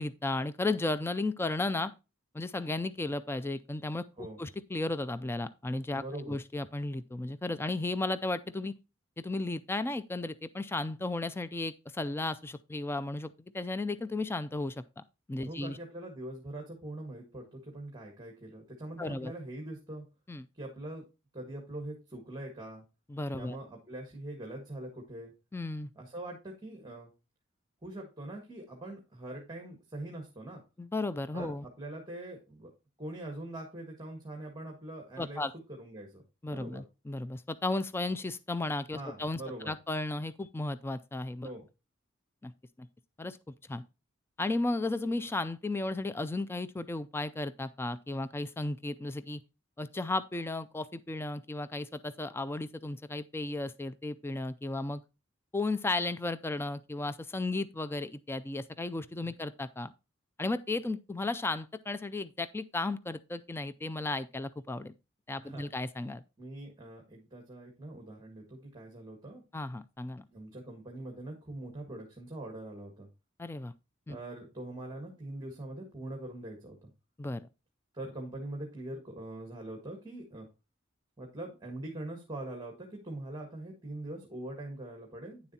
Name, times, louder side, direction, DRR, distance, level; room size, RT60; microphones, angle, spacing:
voice 1, 0.0-1.9 2.3-4.1 4.4-8.7 9.2-15.0 15.3-15.8 19.0-19.3 20.3-20.4 23.1-23.6 25.5-25.9 30.8-31.6 35.2-35.5 36.4-41.5 42.4-42.5 42.8-42.9 43.2-43.8 44.4-49.4 49.8-55.0 55.5-59.9 60.4-64.9 65.3-66.2 69.5-70.2 73.4-73.7 74.1-74.2 77.2-77.5, left 2 dB, 10° left, 0.3 m, -34 dB
voice 2, 6.0-6.4 15.5-20.0 20.5-21.0 21.3-22.8 23.3-25.3 25.9-27.1 27.8-30.6 31.3-32.7 33.0-35.4 35.7-36.2 36.5-36.8 38.9-39.7 41.4-41.7 65.4-65.7 66.4-69.4 70.3-73.1 74.1-76.9 77.9-80.5 81.2-85.5, right 1 dB, 20° right, 1.7 m, -43 dB
9.8 x 7.1 x 2.8 m
head